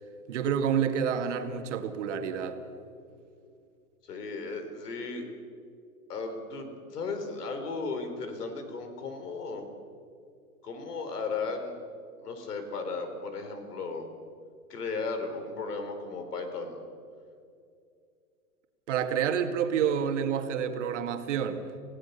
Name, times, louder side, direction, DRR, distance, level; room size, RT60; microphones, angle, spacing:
voice 1, 0.3-2.6 18.9-21.6, right 8 dB, 50° right, 7 dB, 2.1 m, -28 dB
voice 2, 4.1-5.3 6.1-9.7 10.6-11.8 12.2-14.1 14.7-16.8, left 4 dB, 85° left, 7 dB, 4.5 m, -35 dB
28.0 x 16.5 x 6.9 m, 2.4 s
hypercardioid pair, 165°, 45 cm